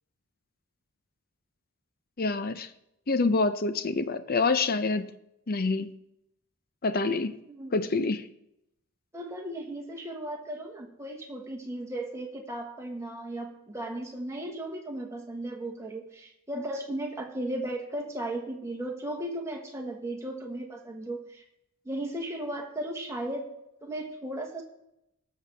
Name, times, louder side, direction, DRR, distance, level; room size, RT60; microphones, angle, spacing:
voice 1, 2.2-2.7 3.1-5.1 5.5-5.9 6.8-7.3 7.7-8.3, left 3 dB, 40° left, 12 dB, 0.6 m, -26 dB
voice 2, 7.5-7.9 9.1-21.4 21.8-23.5 23.8-24.6, right 1 dB, 15° right, 1 dB, 1.5 m, -36 dB
19.0 x 6.8 x 3.4 m, 0.83 s
head